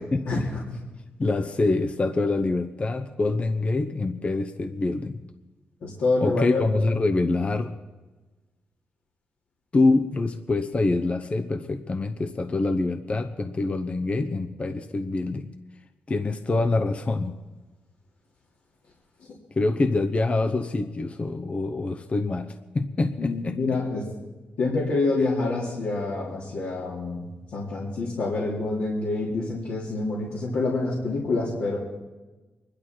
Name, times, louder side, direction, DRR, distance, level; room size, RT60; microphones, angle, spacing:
voice 1, 0.1-0.5 1.2-5.2 6.2-7.7 9.7-15.5 16.1-17.3 19.5-23.8, left 3 dB, 35° left, 8 dB, 0.9 m, -25 dB
voice 2, 5.8-6.6 23.2-24.1 24.6-27.2 27.5-31.8, left 3 dB, 80° left, -6 dB, 3.0 m, -26 dB
23.5 x 11.5 x 4.5 m, 1.2 s
cardioid pair, 90°, 4 cm